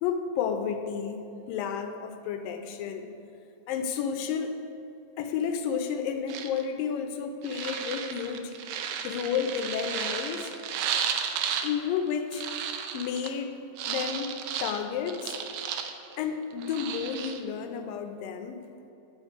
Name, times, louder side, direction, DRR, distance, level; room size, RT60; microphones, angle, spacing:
voice 1, 0.0-3.1 3.7-4.5 5.2-8.6 9.0-10.5 11.6-12.5 12.9-13.5 13.9-15.4 16.2-18.9, left 7 dB, 80° left, 6 dB, 2.2 m, -31 dB
sound 1, 6.3-6.6 7.4-11.7 12.0-13.3 13.8-16.2 16.5-17.4, right 8 dB, 80° right, 2.3 m, -33 dB
12.5 x 4.8 x 8.0 m, 2.9 s
omnidirectional pair, 4.4 m